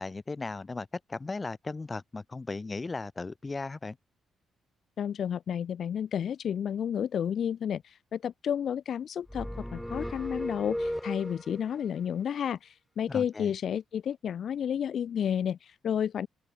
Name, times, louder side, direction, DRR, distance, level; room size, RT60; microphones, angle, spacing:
voice 1, 0.0-4.0 13.1-13.5, left 3 dB, 25° left, 2.5 m, -36 dB
voice 2, 5.0-16.3, left 8 dB, 60° left, 0.4 m, -31 dB
sound 1, 9.3-11.7, equal, 5° left, 0.4 m, -36 dB
open air
cardioid pair, 90°, 0 cm